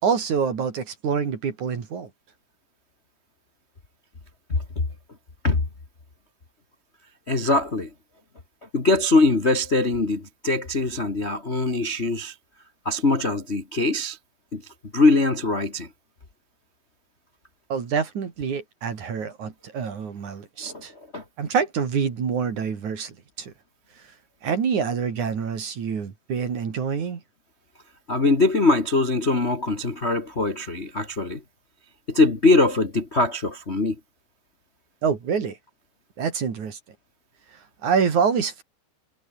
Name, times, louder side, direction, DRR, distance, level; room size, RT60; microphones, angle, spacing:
voice 1, 0.0-2.1 17.7-20.9 21.4-23.5 24.4-27.2 35.0-35.6 36.2-36.8 37.8-38.6, right 6 dB, 45° right, 3.9 m, -26 dB
voice 2, 7.3-7.9 8.7-12.3 12.8-14.2 14.5-14.6 14.9-15.9 20.6-20.8 21.1-21.2 28.1-31.4 32.1-33.9, left 2 dB, 35° left, 1.0 m, -22 dB
omnidirectional pair, 5.1 m